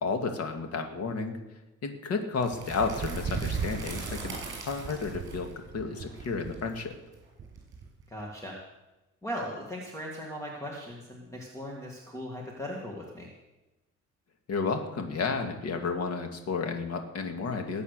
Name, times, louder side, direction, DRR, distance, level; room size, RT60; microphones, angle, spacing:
voice 1, 0.0-1.4 1.8-6.9 14.5-17.8, left 4 dB, 55° left, 5 dB, 2.2 m, -32 dB
sound 1, 2.4-8.2, right 5 dB, 40° right, 6.3 m, -36 dB
voice 2, 8.1-8.6 9.2-13.3, equal, 10° left, -2 dB, 2.1 m, -38 dB
20.0 x 8.6 x 6.7 m, 1.0 s
cardioid pair, 150°, 29 cm